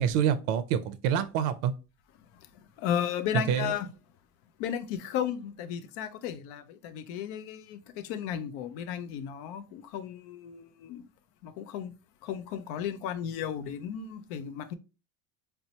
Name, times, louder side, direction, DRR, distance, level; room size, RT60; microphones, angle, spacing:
voice 1, 0.0-1.7 3.3-3.7, right 9 dB, 55° right, 0.5 m, -27 dB
voice 2, 2.8-3.9 4.6-11.0 11.4-11.9 12.2-14.7, left 9 dB, 50° left, 0.5 m, -34 dB
4.1 x 2.1 x 2.7 m
supercardioid pair, 130°, 48 cm